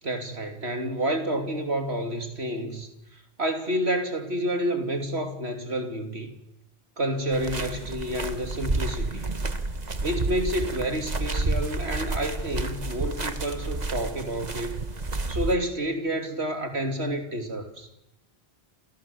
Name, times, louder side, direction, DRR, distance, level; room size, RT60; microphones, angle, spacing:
voice 1, 0.0-6.3 7.0-9.3 10.0-14.9 15.3-17.9, right 1 dB, 70° right, 3.4 m, -29 dB
sound 1, 7.3-15.6, right 2 dB, 40° right, 1.6 m, -30 dB
29.5 x 28.5 x 7.2 m
omnidirectional pair, 1.1 m